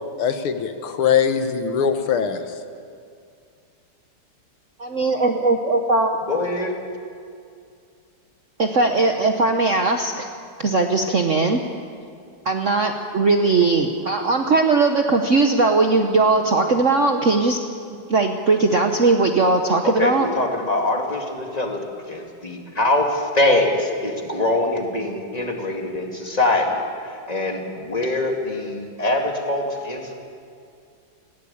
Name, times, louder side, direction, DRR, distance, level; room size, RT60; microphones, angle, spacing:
voice 1, 0.2-2.4, left 7 dB, 80° left, 8 dB, 2.1 m, -21 dB
voice 2, 4.8-6.2 8.6-10.3 10.6-11.6 12.4-17.6 18.1-20.3, right 3 dB, 50° right, 4 dB, 1.0 m, -19 dB
voice 3, 6.3-6.7 19.8-30.1, left 2 dB, 20° left, 2 dB, 2.2 m, -23 dB
19.5 x 16.5 x 8.7 m, 2.3 s
omnidirectional pair, 2.4 m